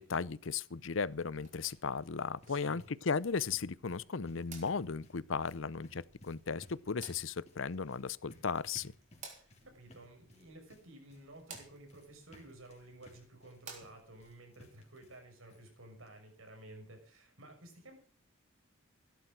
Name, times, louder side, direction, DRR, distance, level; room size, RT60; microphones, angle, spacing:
voice 1, 0.0-8.9, left 5 dB, 75° left, 0.7 m, -36 dB
sound 1, 1.3-14.3, right 5 dB, 35° right, 3.9 m, -57 dB
sound 2, 2.0-15.2 15.5-15.6 16.1-16.2 16.5-16.6, left 1 dB, 30° left, 3.5 m, -61 dB
voice 2, 2.4-2.9 9.4-18.0, right 1 dB, 85° right, 6.0 m, -54 dB
16.5 x 12.0 x 6.1 m
head